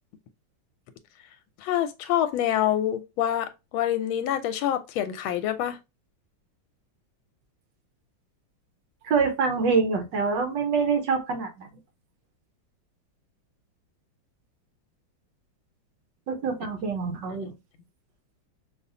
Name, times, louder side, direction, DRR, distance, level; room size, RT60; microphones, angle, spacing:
voice 1, 1.6-5.8, left 11 dB, 85° left, 1.4 m, -26 dB
voice 2, 9.0-11.7 16.3-17.5, right 5 dB, 65° right, 1.4 m, -25 dB
5.2 x 2.4 x 2.6 m
omnidirectional pair, 2.2 m